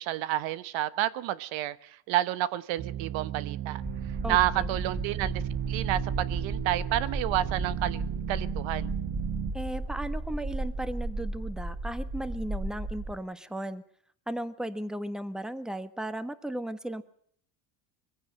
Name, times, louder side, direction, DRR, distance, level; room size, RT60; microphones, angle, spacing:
voice 1, 0.0-3.8 4.3-8.9, right 14 dB, 75° right, 16 dB, 1.2 m, -30 dB
sound 1, 2.8-9.5, right 12 dB, 55° right, 1.5 m, -35 dB
sound 2, 3.8-13.1, right 2 dB, 20° right, 3.0 m, -34 dB
voice 2, 4.2-4.8 9.5-13.8 14.3-17.0, right 1 dB, ahead, 12 dB, 1.3 m, -36 dB
22.0 x 16.0 x 7.7 m, 0.64 s
cardioid pair, 115°, 46 cm